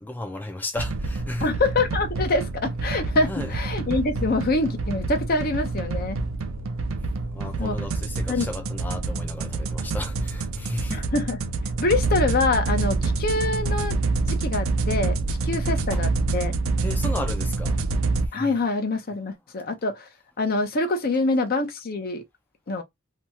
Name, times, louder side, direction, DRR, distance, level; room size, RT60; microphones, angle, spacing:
voice 1, 0.0-1.5 3.3-3.5 7.3-11.0 16.8-17.8 18.2-18.5, left 2 dB, 10° left, 0.4 m, -34 dB
sound 1, 0.8-18.3, right 3 dB, 75° right, 0.4 m, -27 dB
voice 2, 1.4-6.2 7.6-7.7 8.3-8.5 10.9-11.5 11.8-14.0 14.3-16.5 18.3-20.0 20.4-22.2 22.7-22.8, left 2 dB, 50° left, 0.7 m, -25 dB
2.8 x 2.3 x 2.8 m
head